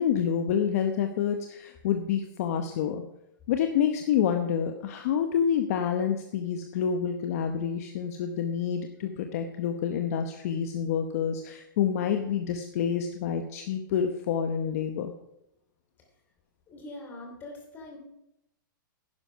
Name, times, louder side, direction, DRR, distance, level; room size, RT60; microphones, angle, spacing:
voice 1, 0.0-3.0 3.5-15.1, left 8 dB, 45° left, 6 dB, 1.0 m, -28 dB
voice 2, 16.7-18.0, left 2 dB, 15° left, 1 dB, 3.0 m, -43 dB
11.0 x 9.9 x 5.7 m, 0.81 s
hypercardioid pair, 165°, 11 cm